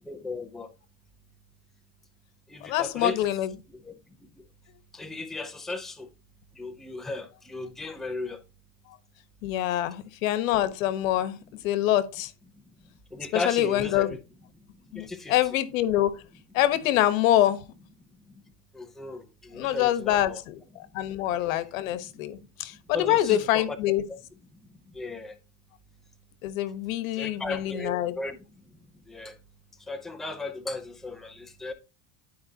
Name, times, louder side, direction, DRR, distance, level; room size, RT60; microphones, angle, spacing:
voice 1, 0.0-0.7 2.5-3.2 3.8-3.9 4.9-6.1 6.6-8.4 9.7-9.8 13.1-14.2 14.9-15.4 18.7-20.4 22.9-23.8 24.1-24.2 24.9-25.4 27.1-28.4 29.1-29.3 29.9-31.7, left 3 dB, ahead, 0.6 m, -36 dB
voice 2, 2.7-3.5 9.4-11.4 11.6-12.3 13.3-14.2 14.9-16.2 16.5-17.6 19.5-24.0 26.4-28.1, left 13 dB, 85° left, 1.2 m, -25 dB
12.0 x 4.9 x 2.8 m
supercardioid pair, 150°, 39 cm